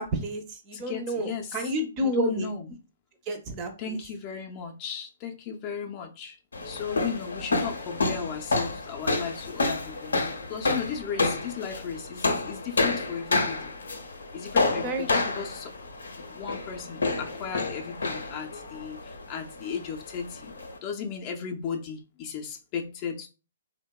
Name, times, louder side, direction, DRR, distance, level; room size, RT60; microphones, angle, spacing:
voice 1, 0.0-2.5 3.3-4.0 14.8-15.1 15.4-15.5, right 1 dB, 30° right, 0.5 m, -30 dB
voice 2, 0.7-1.7 2.0-2.7 3.8-6.4 6.6-13.7 14.3-15.7 16.2-20.5 20.8-23.3, left 6 dB, 35° left, 0.4 m, -36 dB
sound 1, 6.5-20.8, left 3 dB, 85° left, 0.5 m, -29 dB
2.7 x 2.0 x 2.2 m
hypercardioid pair, 135°, 0 cm